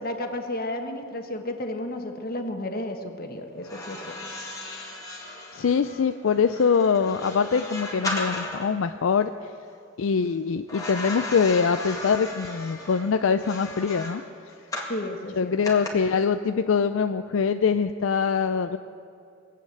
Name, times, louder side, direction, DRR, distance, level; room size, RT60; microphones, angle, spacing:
voice 1, 0.0-4.2 14.9-15.5, left 1 dB, 45° left, 5 dB, 1.4 m, -32 dB
sound 1, 3.6-8.8 10.7-15.0 15.6-15.9, left 2 dB, 15° left, 2.0 m, -36 dB
voice 2, 5.5-9.3 10.0-14.2 15.4-18.8, left 6 dB, 70° left, 9 dB, 0.4 m, -23 dB
21.5 x 8.6 x 7.7 m, 2.5 s
head